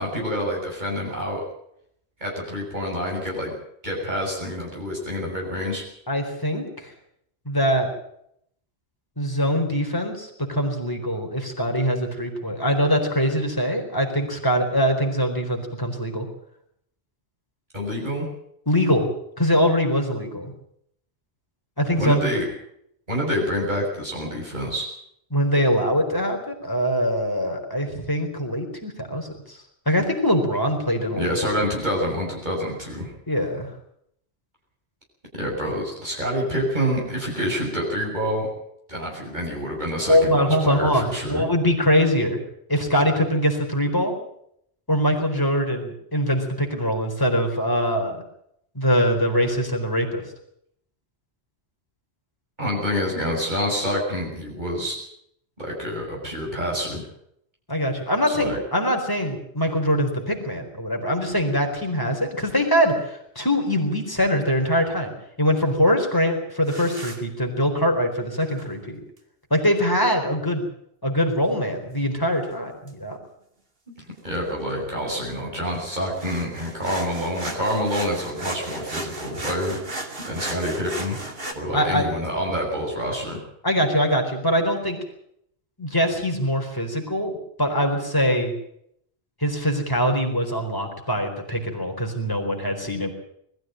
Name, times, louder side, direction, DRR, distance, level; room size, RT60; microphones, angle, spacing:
voice 1, 0.0-1.4 2.2-3.6 3.8-5.8 17.7-18.3 22.0-22.5 23.1-24.9 31.1-33.1 35.4-38.5 38.9-41.4 52.6-55.0 55.6-57.0 58.3-58.6 73.9-74.0 74.2-79.8 80.2-81.2 81.6-83.4, equal, 45° right, -2 dB, 6.8 m, -27 dB
voice 2, 6.1-6.9 7.5-7.9 9.2-16.3 18.7-19.1 19.4-20.5 21.8-22.2 25.3-29.6 29.9-31.4 33.3-33.7 40.1-42.4 42.7-44.2 44.9-48.2 48.7-50.2 57.7-69.0 69.5-70.6 71.0-73.2 81.7-82.1 83.6-85.0 85.8-88.5 89.4-93.1, equal, 20° left, 3 dB, 4.3 m, -23 dB
sound 1, 62.2-62.4 66.7-67.2 68.4-68.7 72.5-72.6 72.9-73.0 74.4-74.5 74.7-74.8 75.1-81.5, right 2 dB, 60° right, 2.7 m, -35 dB
21.0 x 14.0 x 9.1 m, 0.72 s
omnidirectional pair, 1.1 m